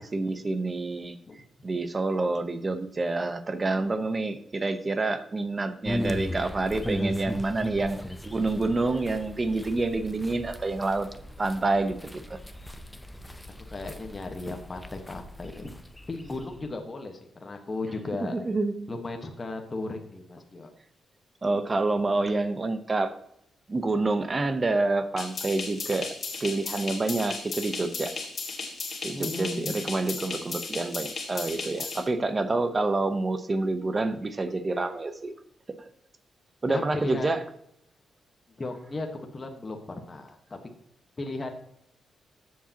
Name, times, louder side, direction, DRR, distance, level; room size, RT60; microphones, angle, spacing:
voice 1, 0.0-11.1 11.4-12.4 18.2-18.9 21.4-23.1 23.7-26.1 26.4-28.1 29.0-35.3 35.8-35.9 36.6-37.4, right 2 dB, 25° right, 10 dB, 0.9 m, -28 dB
sound 1, 5.8-16.7, left 1 dB, 5° left, 0.6 m, -37 dB
voice 2, 13.7-15.7 16.1-18.4 18.9-20.7 29.1-29.7 36.7-37.3 38.6-40.6 41.2-41.6, left 2 dB, 25° left, 3 dB, 1.3 m, -36 dB
sound 2, 25.2-32.0, left 4 dB, 45° left, 2.1 m, -35 dB
13.0 x 7.6 x 2.9 m, 0.76 s
wide cardioid pair, 140°, 0 cm